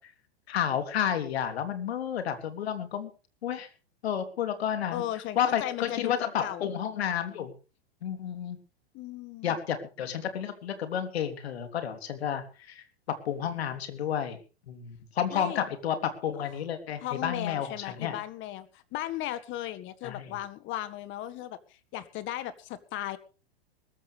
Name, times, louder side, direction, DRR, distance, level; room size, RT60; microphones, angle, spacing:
voice 1, 0.5-3.1 3.4-3.7 4.0-5.0 5.4-7.5 8.0-8.6 9.4-14.4 14.7-18.2 20.0-20.3, left 9 dB, 80° left, 8 dB, 3.3 m, -31 dB
voice 2, 4.9-6.1 6.4-6.7 8.9-9.6 15.3-15.6 17.0-23.2, left 13 dB, 40° left, 13 dB, 1.8 m, -36 dB
21.0 x 14.0 x 3.4 m, 0.35 s
hypercardioid pair, 120°, 31 cm